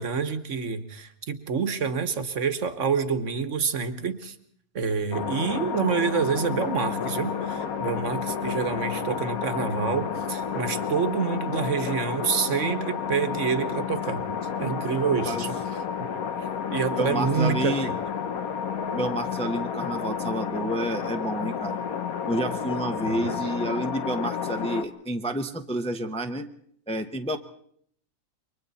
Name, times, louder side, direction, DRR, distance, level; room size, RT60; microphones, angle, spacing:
voice 1, 0.0-4.3 4.7-14.2 14.6-15.5 16.4-18.0 23.1-23.3, right 6 dB, 60° right, 10 dB, 1.5 m, -27 dB
sound 1, 5.1-24.8, left 7 dB, 80° left, 1.5 m, -31 dB
voice 2, 17.0-17.9 18.9-21.8 22.3-26.5 26.9-27.4, right 1 dB, 5° left, 6 dB, 0.7 m, -29 dB
28.5 x 23.5 x 4.1 m, 0.65 s
omnidirectional pair, 1.5 m